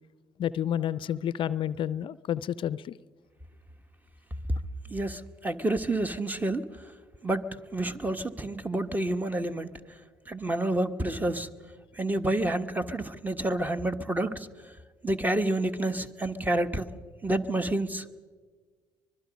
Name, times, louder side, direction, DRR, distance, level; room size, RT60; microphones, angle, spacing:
voice 1, 0.4-3.0, left 10 dB, 50° left, 18 dB, 0.5 m, -30 dB
voice 2, 4.9-6.7 7.2-9.7 10.3-11.5 12.0-14.5 15.0-16.9 17.2-18.2, right 1 dB, 15° right, 10 dB, 1.4 m, -29 dB
24.5 x 21.0 x 5.2 m, 1.5 s
hypercardioid pair, 55°, 11 cm